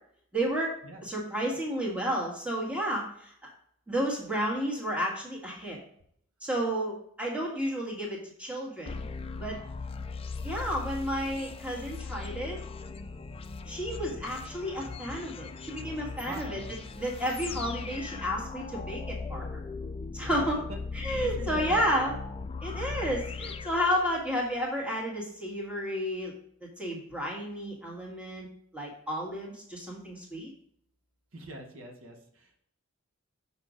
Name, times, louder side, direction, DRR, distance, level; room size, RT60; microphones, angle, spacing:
voice 1, 0.3-0.7 1.0-3.5 3.9-5.8 6.4-9.0 9.4-9.6 10.4-12.6 13.7-16.6 17.0-19.6 20.1-20.6 20.9-22.1 22.6-26.3 26.6-28.5 28.7-30.5, equal, 5° right, -3 dB, 1.6 m, -32 dB
sound 1, 8.9-24.5, left 4 dB, 25° left, 0.4 m, -39 dB
voice 2, 16.2-16.7 20.2-21.9 31.3-32.6, right 1 dB, 70° right, 3 dB, 1.2 m, -44 dB
6.4 x 5.3 x 5.0 m, 0.68 s
head